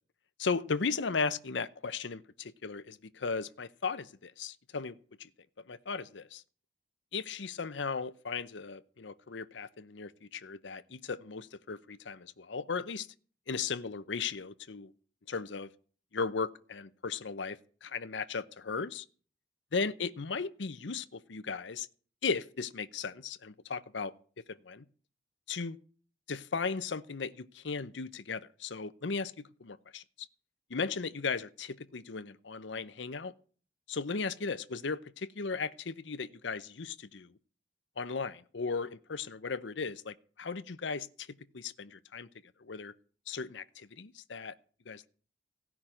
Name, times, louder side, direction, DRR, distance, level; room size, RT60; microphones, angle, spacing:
voice 1, 0.4-5.3 5.7-6.4 7.1-13.1 13.5-14.9 15.3-15.7 16.1-19.0 19.7-21.9 22.2-24.8 25.5-25.8 26.3-29.3 29.6-30.3 30.7-33.3 33.9-37.3 38.0-41.3 41.5-42.3 42.6-42.9 43.3-44.5 44.9-45.1, left 5 dB, 80° left, 0.7 m, -36 dB
16.0 x 6.1 x 10.0 m
head